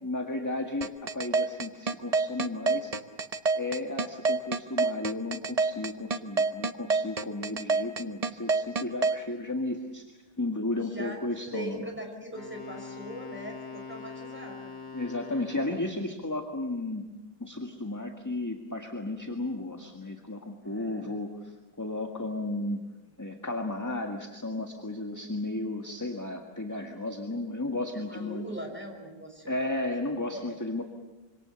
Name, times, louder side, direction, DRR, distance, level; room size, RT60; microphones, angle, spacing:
voice 1, 0.0-3.0 3.5-10.1 10.4-11.9 14.9-17.1 17.4-22.9 23.2-28.4 29.5-30.8, left 2 dB, 10° left, 3 dB, 1.6 m, -34 dB
sound 1, 0.8-9.2, right 4 dB, 30° right, 0.7 m, -26 dB
voice 2, 10.7-11.2 11.5-14.6 20.6-21.2 27.9-29.5 30.3-30.5, right 1 dB, 5° right, 1 dB, 5.5 m, -41 dB
Wind instrument woodwind instrument, 12.3-16.1, left 4 dB, 40° left, 2.2 m, -43 dB
26.0 x 25.5 x 6.9 m, 1.1 s
omnidirectional pair, 1.8 m